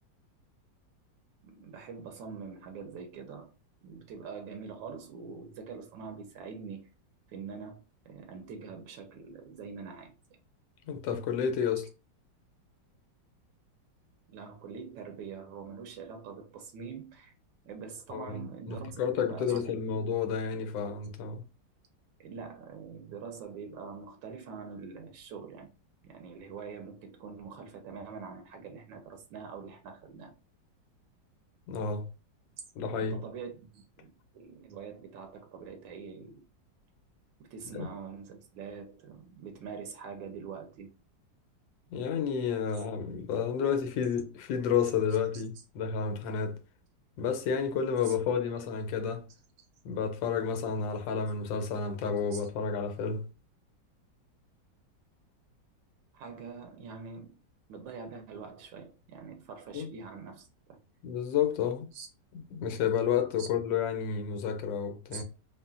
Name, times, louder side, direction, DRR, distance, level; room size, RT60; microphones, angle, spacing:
voice 1, 1.4-3.5 3.8-6.8 7.3-7.8 8.0-10.1 11.8-11.9 14.3-17.3 17.7-20.1 22.2-25.7 26.0-30.3 32.9-36.4 37.4-40.9 45.1-45.6 48.0-48.2 52.3-52.5 56.1-57.4 57.7-60.8 61.9-62.1 63.4-63.5 65.1-65.2, right 5 dB, 80° right, 1.3 m, -44 dB
voice 2, 10.9-11.8 18.1-18.4 18.7-21.4 31.7-32.0 32.8-33.2 37.7-37.9 41.9-46.6 47.2-49.2 49.8-53.2 59.7-59.9 61.0-61.9 62.5-65.2, left 7 dB, 90° left, 1.3 m, -30 dB
3.8 x 2.1 x 2.3 m
omnidirectional pair, 2.0 m